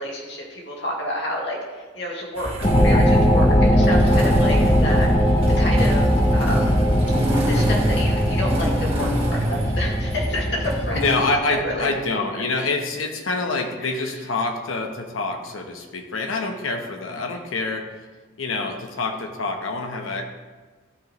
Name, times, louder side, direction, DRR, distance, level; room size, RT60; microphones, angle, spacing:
voice 1, 0.0-6.8 7.5-11.0 11.5-11.9 13.8-14.2, left 1 dB, 60° left, -3 dB, 1.9 m, -30 dB
Motorcycle / Engine starting, 2.4-11.2, right 1 dB, 30° right, 1.7 m, -25 dB
sound 1, 2.6-11.8, equal, 25° left, 0.7 m, -20 dB
voice 2, 10.9-17.9 18.4-20.2, left 3 dB, 85° left, 3 dB, 1.0 m, -26 dB
13.5 x 5.1 x 3.1 m, 1.3 s
head